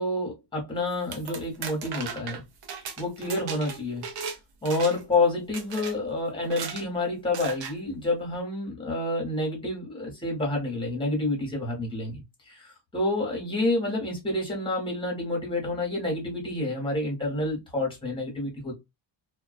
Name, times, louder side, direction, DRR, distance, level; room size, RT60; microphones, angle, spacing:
voice 1, 0.0-2.4 3.0-4.0 4.6-18.8, left 2 dB, 10° left, 1.0 m, -29 dB
sound 1, 0.9-4.4 4.7-5.1 5.5-5.9 6.4-6.8 7.3-7.7, right 6 dB, 55° right, 0.6 m, -37 dB
2.3 x 2.3 x 2.4 m
cardioid pair, 170°, 45 cm